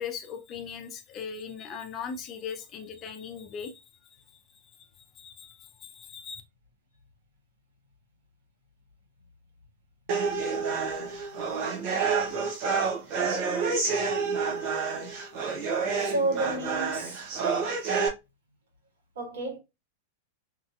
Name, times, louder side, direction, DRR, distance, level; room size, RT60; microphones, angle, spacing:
voice 1, 0.0-3.7 5.2-6.4, left 7 dB, 35° left, 0.6 m, -39 dB
sound 1, 10.1-18.1, right 5 dB, 55° right, 0.9 m, -28 dB
voice 2, 16.0-17.3 19.1-19.6, right 2 dB, 75° right, 1.5 m, -31 dB
2.9 x 2.7 x 2.5 m
hypercardioid pair, 100°, 0 cm